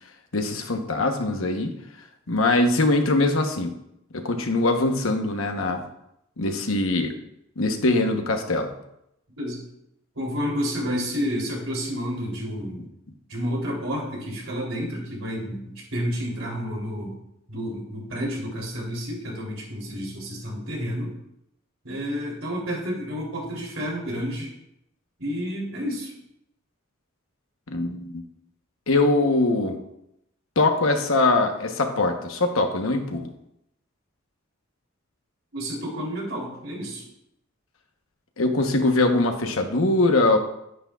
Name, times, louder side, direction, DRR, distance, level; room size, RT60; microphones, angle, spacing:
voice 1, 0.3-1.7 2.3-3.7 4.1-5.8 6.4-7.1 7.6-8.7 27.7-28.2 28.9-29.8 30.6-33.3 38.4-40.4, left 2 dB, 75° left, 4 dB, 1.1 m, -22 dB
voice 2, 10.1-12.8 13.3-15.6 15.9-17.1 17.5-21.2 21.8-24.5 25.2-26.1 35.5-37.1, equal, 75° right, -2 dB, 3.3 m, -30 dB
9.7 x 9.3 x 2.4 m, 0.80 s
head